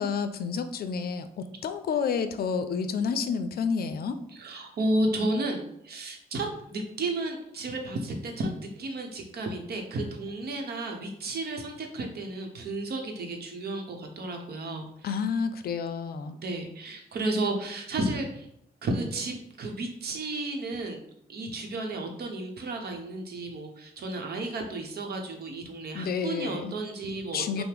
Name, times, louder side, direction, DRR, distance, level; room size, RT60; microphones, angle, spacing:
voice 1, 0.0-4.2 15.0-16.4 25.9-26.8 27.3-27.6, left 6 dB, 70° left, 10 dB, 0.4 m, -30 dB
voice 2, 4.4-15.1 16.4-18.5 18.8-21.0 21.3-27.6, right 2 dB, 75° right, 2 dB, 0.8 m, -32 dB
5.7 x 2.0 x 3.4 m, 0.75 s
wide cardioid pair, 110°, 16 cm